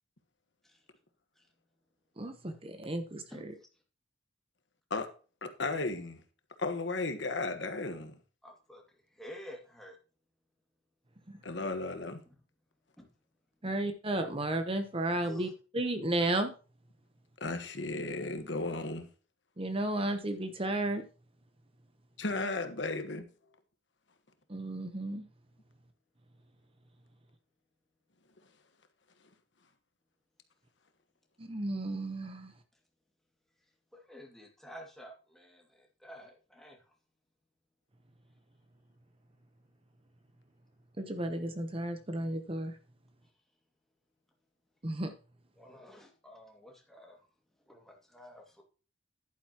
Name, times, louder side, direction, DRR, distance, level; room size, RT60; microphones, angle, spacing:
voice 1, 2.2-3.5 13.6-16.5 19.6-21.0 24.5-25.3 31.4-32.5 41.0-42.7 44.8-45.1, right 1 dB, 30° right, 0.9 m, -33 dB
voice 2, 5.4-6.2 6.6-8.2 11.4-12.2 17.4-19.1 22.2-23.2, left 3 dB, 65° left, 1.3 m, -34 dB
voice 3, 8.4-10.0 13.0-13.1 13.6-13.8 14.4-14.5 15.2-15.5 33.9-36.9 45.6-47.3 47.7-48.6, equal, ahead, 2.2 m, -51 dB
11.0 x 9.1 x 3.0 m
head